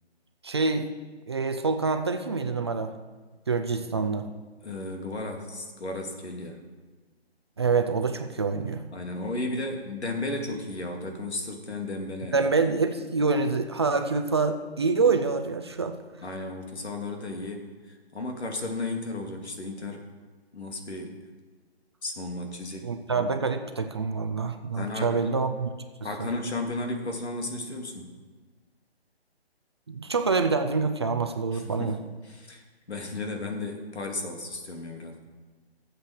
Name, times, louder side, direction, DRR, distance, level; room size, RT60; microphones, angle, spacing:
voice 1, 0.4-0.9 1.3-2.9 3.5-4.3 7.6-8.8 12.3-16.0 22.8-25.7 29.9-32.0, right 4 dB, 25° right, 7 dB, 0.5 m, -26 dB
voice 2, 4.6-6.6 8.9-12.5 16.2-20.1 20.5-21.1 22.0-23.3 24.8-25.4 26.0-28.1 31.5-32.0 32.2-35.2, left 2 dB, 90° left, 3 dB, 2.6 m, -34 dB
13.0 x 7.7 x 6.4 m, 1.4 s
hypercardioid pair, 160°, 32 cm